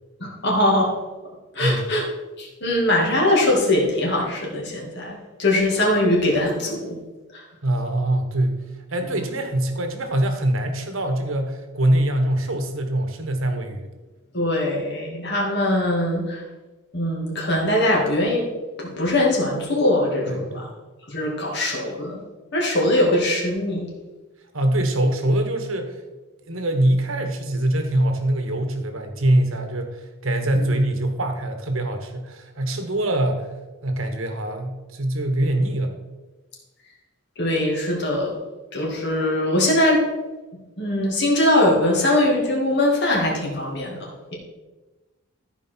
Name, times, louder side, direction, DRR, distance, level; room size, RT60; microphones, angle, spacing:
voice 1, 0.2-1.0 1.5-2.0 2.4-7.0 14.3-16.4 16.9-18.4 18.8-20.7 21.1-22.2 22.5-23.9 30.5-30.7 37.4-38.4 38.7-40.1 40.8-44.4, left 1 dB, 50° left, -2 dB, 2.2 m, -21 dB
voice 2, 7.6-8.6 8.9-13.9 20.3-20.7 24.5-26.0 26.5-33.5 33.8-36.0, right 1 dB, 70° right, 6 dB, 1.2 m, -23 dB
14.0 x 4.9 x 4.5 m, 1.2 s
head